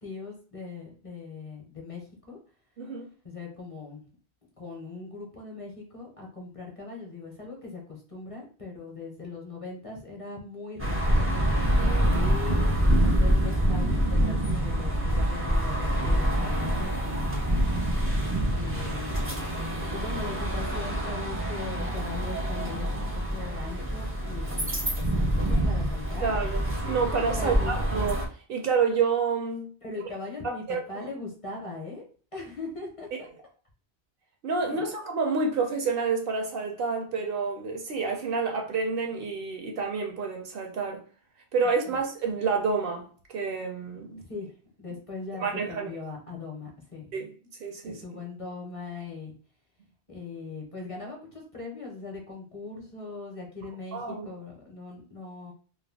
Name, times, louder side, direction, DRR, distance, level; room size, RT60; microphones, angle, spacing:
voice 1, 0.0-2.4 3.2-4.1 4.6-11.3 12.1-17.3 18.5-26.3 27.3-27.7 29.8-32.0 32.3-33.3 34.7-34.9 41.9-42.0 44.3-44.5 44.8-47.2 47.8-49.3 50.1-55.5, left 3 dB, 35° left, 0.7 m, -40 dB
voice 2, 2.8-3.1 11.8-12.2 26.2-29.7 30.4-31.1 34.4-41.0 41.5-44.2 45.4-45.9 47.1-47.3 47.6-48.0 53.9-54.3, right 5 dB, 65° right, 0.7 m, -29 dB
sound 1, 10.8-28.3, equal, 15° right, 0.5 m, -26 dB
2.4 x 2.1 x 3.4 m
omnidirectional pair, 1.1 m